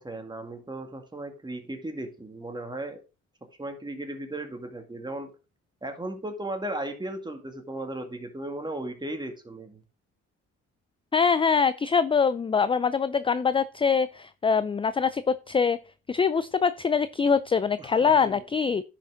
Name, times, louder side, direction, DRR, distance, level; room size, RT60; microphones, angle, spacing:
voice 1, 0.0-3.0 3.6-5.3 5.8-9.8 17.8-18.4, right 1 dB, 15° right, 5 dB, 2.1 m, -36 dB
voice 2, 11.1-15.8 16.1-18.8, left 5 dB, 20° left, 14 dB, 0.4 m, -24 dB
10.5 x 5.9 x 3.9 m, 0.32 s
cardioid pair, 90°, 30 cm